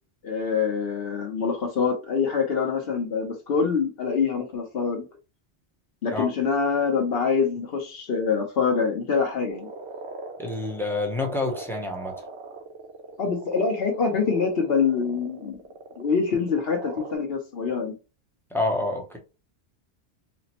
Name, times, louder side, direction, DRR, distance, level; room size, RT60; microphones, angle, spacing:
voice 1, 0.2-5.0 6.0-9.7 13.2-15.6 16.0-17.9, left 5 dB, 60° left, 0.9 m, -25 dB
sound 1, 9.5-17.2, right 3 dB, 80° right, 0.9 m, -40 dB
voice 2, 10.4-12.2 18.5-19.2, left 2 dB, 5° left, 0.5 m, -28 dB
4.2 x 2.0 x 2.8 m
omnidirectional pair, 1.1 m